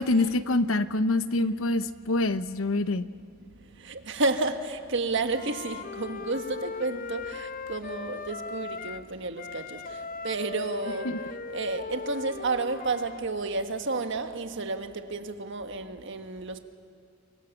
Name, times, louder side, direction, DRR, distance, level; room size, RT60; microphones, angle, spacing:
voice 1, 0.0-3.1 11.0-11.2, left 2 dB, 85° left, 0.9 m, -25 dB
voice 2, 3.8-16.6, right 3 dB, 65° right, 1.6 m, -31 dB
Wind instrument woodwind instrument, 5.3-9.1 9.4-13.2, left 4 dB, 45° left, 0.8 m, -38 dB
30.0 x 25.0 x 7.3 m
head